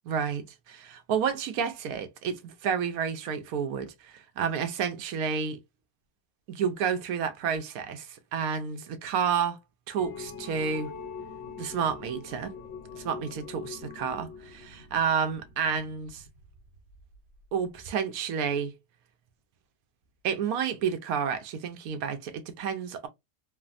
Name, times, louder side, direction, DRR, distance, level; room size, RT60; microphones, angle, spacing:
voice 1, 0.1-5.6 6.5-9.6 9.9-10.9 11.6-12.5 12.9-16.2 17.5-18.7 20.2-23.1, right 7 dB, 75° right, 1.1 m, -30 dB
sound 1, 9.9-17.5, left 5 dB, 60° left, 0.8 m, -43 dB
3.2 x 2.0 x 2.4 m
omnidirectional pair, 1.6 m